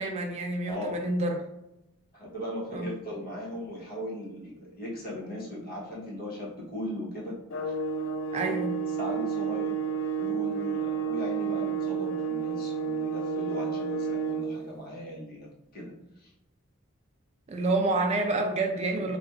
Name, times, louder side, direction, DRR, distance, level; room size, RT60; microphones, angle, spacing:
voice 1, 0.0-1.4 2.7-2.9 8.3-8.7 17.5-19.2, right 2 dB, 30° right, 3 dB, 0.3 m, -28 dB
voice 2, 0.7-1.0 2.1-7.4 8.3-8.6 9.0-9.7 10.2-16.3, left 1 dB, 45° left, -3 dB, 1.0 m, -38 dB
sound 1, 7.5-14.6, right 6 dB, 70° left, 0.4 m, -30 dB
4.1 x 2.2 x 2.3 m, 0.88 s
head